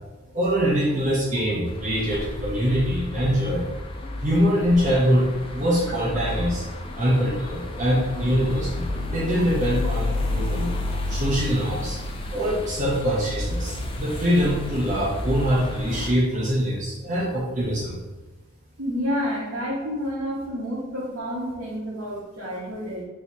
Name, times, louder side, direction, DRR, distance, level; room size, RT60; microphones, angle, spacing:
voice 1, 0.3-3.7 4.2-5.3 5.5-6.6 7.0-8.9 9.1-10.7 11.1-12.0 12.3-18.0, equal, 35° right, -5 dB, 0.6 m, -23 dB
sound 1, 1.7-16.1, left 2 dB, 25° left, 0.3 m, -31 dB
voice 2, 18.8-23.0, equal, 60° right, -6 dB, 0.8 m, -29 dB
3.1 x 2.7 x 4.5 m, 1.2 s
head